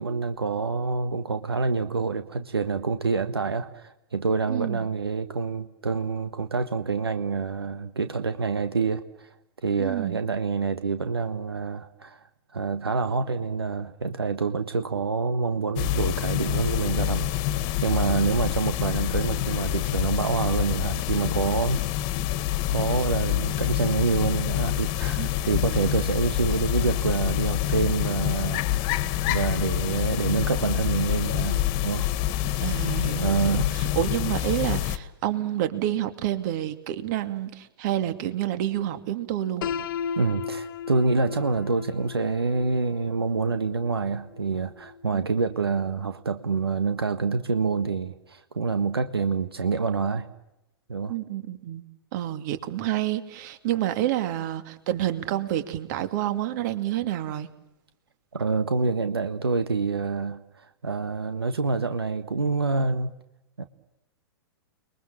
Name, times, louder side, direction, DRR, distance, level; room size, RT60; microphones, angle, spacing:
voice 1, 0.0-9.3 9.6-12.2 12.5-21.8 22.7-32.1 32.3-32.6 33.2-33.7 40.2-50.3 50.9-51.1 58.3-63.1 63.6-63.7, right 4 dB, 85° right, 9 dB, 1.5 m, -27 dB
voice 2, 4.5-4.9 9.8-10.2 25.2-25.3 32.6-39.7 45.1-45.2 51.1-51.8 52.1-57.5, right 12 dB, 50° right, 9 dB, 2.6 m, -28 dB
sound 1, 15.8-35.0, left 13 dB, 40° left, 1.7 m, -27 dB
Piano, 39.6-45.5, left 7 dB, 60° left, 1.5 m, -36 dB
30.0 x 22.5 x 7.4 m, 0.90 s
figure-of-eight pair, 110°, 13 cm